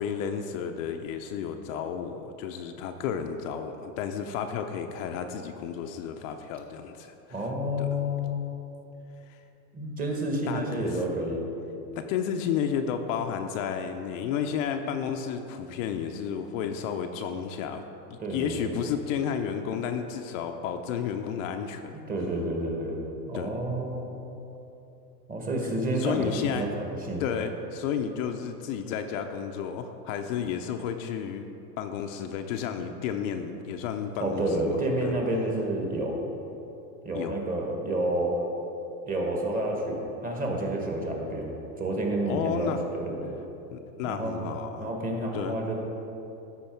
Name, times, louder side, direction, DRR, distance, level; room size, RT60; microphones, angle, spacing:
voice 1, 0.0-7.5 7.8-7.9 9.3-9.4 10.5-11.0 12.1-17.8 18.1-22.0 23.3-23.5 26.0-26.7 27.2-31.4 31.8-35.1 37.1-37.4 42.3-42.8 43.7-44.9 45.3-45.5, left 7 dB, 55° left, 5 dB, 0.6 m, -32 dB
voice 2, 7.3-8.4 9.7-11.4 18.2-18.8 22.1-23.0 23.3-24.1 25.3-27.2 34.2-36.2 37.0-38.4 39.0-43.4 44.0-44.4 44.8-45.7, right 1 dB, 15° right, 0 dB, 1.4 m, -29 dB
13.0 x 4.6 x 4.5 m, 2.9 s
hypercardioid pair, 120°, 49 cm